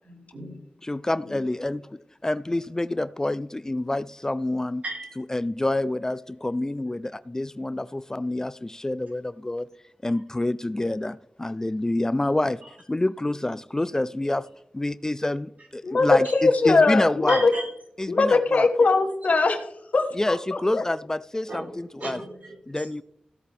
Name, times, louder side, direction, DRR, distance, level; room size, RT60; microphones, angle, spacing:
voice 1, 0.0-0.6 4.8-5.2 16.2-16.3 17.3-17.7 21.5-21.7 22.0-22.9, right 2 dB, 70° right, 4.8 m, -36 dB
voice 2, 0.8-4.8 5.2-9.7 10.0-12.6 12.9-17.5 18.0-18.7 20.2-22.2 22.7-23.0, left 1 dB, 20° left, 0.3 m, -27 dB
voice 3, 15.8-17.5 18.1-20.8, left 3 dB, 65° left, 1.4 m, -21 dB
16.0 x 8.8 x 3.5 m
wide cardioid pair, 65°, 3 cm